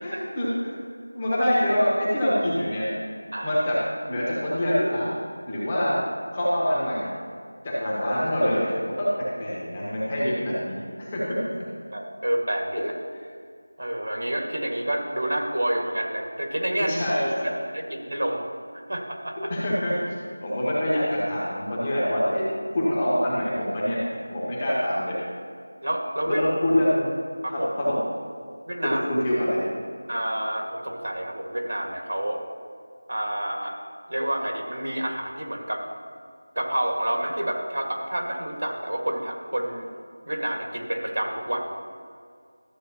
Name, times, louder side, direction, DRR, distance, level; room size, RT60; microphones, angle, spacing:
voice 1, 0.0-0.7 1.1-2.9 3.4-3.8 4.1-5.2 5.5-5.9 6.3-7.1 7.6-11.4 13.1-13.2 16.8-17.6 19.4-22.4 22.7-24.0 24.3-25.2 26.3-27.2 27.5-28.0 28.8-29.6, equal, 15° left, -8 dB, 1.4 m, -25 dB
voice 2, 11.9-12.9 13.8-17.0 17.9-18.4 18.7-19.5 25.8-26.4 27.4-27.7 28.7-29.0 30.1-32.4 33.1-33.8 34.1-35.8 36.6-39.9 40.3-41.7, right 1 dB, 65° right, 2 dB, 1.7 m, -28 dB
13.0 x 7.6 x 2.9 m, 2.1 s
figure-of-eight pair, 180°, 0 cm